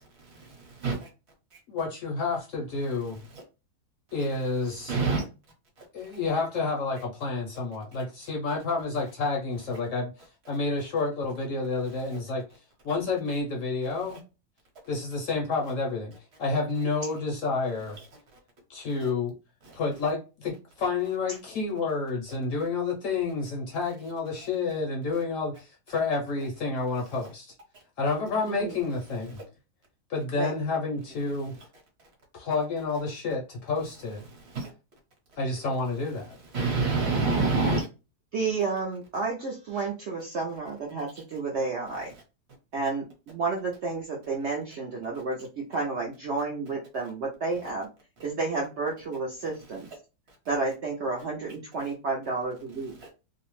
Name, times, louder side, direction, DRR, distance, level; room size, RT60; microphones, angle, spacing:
voice 1, 0.4-1.1 4.9-5.2 34.5-34.7 36.5-37.9, right 3 dB, 50° right, 1 dB, 1.0 m, -26 dB
voice 2, 1.7-3.2 4.1-5.0 5.9-14.2 14.9-16.1 16.4-18.0 18.7-19.3 19.7-27.5 28.0-29.4 30.1-31.5 32.3-34.2 35.4-36.4, left 3 dB, 65° left, 0 dB, 0.8 m, -29 dB
voice 3, 38.3-42.1 42.7-47.9 48.2-49.9 50.5-52.9, right 4 dB, 70° right, -1 dB, 0.6 m, -31 dB
2.6 x 2.0 x 3.0 m, 0.30 s
omnidirectional pair, 1.7 m